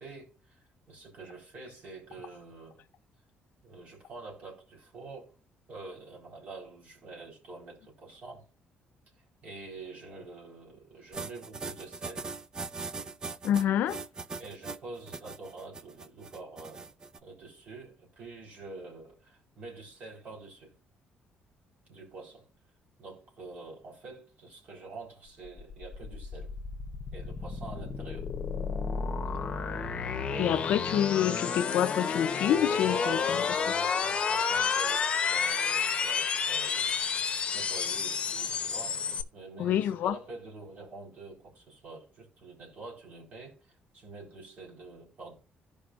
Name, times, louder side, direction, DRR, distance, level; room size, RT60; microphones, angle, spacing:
voice 1, 0.0-2.8 3.6-5.3 5.7-8.4 9.4-12.3 14.4-16.9 17.2-20.7 21.9-22.4 23.0-26.5 27.1-28.3 30.3-30.9 32.4-37.0 37.5-39.0 39.3-45.3, right 3 dB, 50° right, 4.0 m, -46 dB
sound 1, 11.1-17.2, right 4 dB, 25° right, 0.5 m, -40 dB
voice 2, 13.4-14.0 30.4-33.4 39.6-40.2, left 10 dB, 65° left, 0.5 m, -27 dB
sound 2, 25.5-39.2, left 6 dB, 35° left, 0.9 m, -30 dB
16.0 x 5.3 x 2.5 m
cardioid pair, 165°, 3 cm